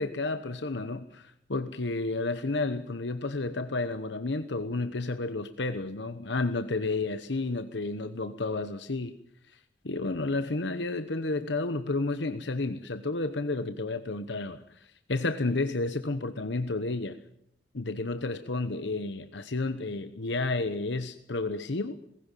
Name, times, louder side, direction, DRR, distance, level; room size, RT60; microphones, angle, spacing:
voice 1, 0.0-9.1 9.5-9.6 9.8-17.2 17.7-22.0, left 3 dB, 75° left, 9 dB, 1.0 m, -31 dB
19.5 x 16.5 x 9.1 m, 0.75 s
head